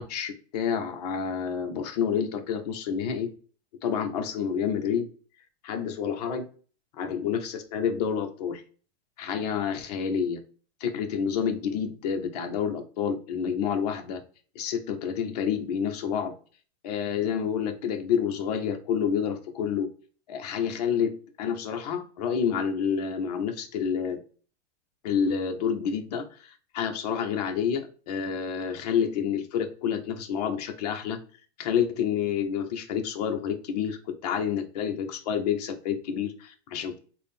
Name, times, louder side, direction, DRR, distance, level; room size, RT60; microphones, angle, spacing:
voice 1, 0.0-3.3 3.8-5.1 5.6-6.5 7.0-8.6 9.2-10.4 10.8-14.2 14.6-16.3 16.8-19.9 20.3-24.2 25.0-31.2 31.6-37.0, left 7 dB, 35° left, 6 dB, 0.4 m, -29 dB
3.5 x 2.0 x 4.0 m, 0.40 s
supercardioid pair, 165°, 35 cm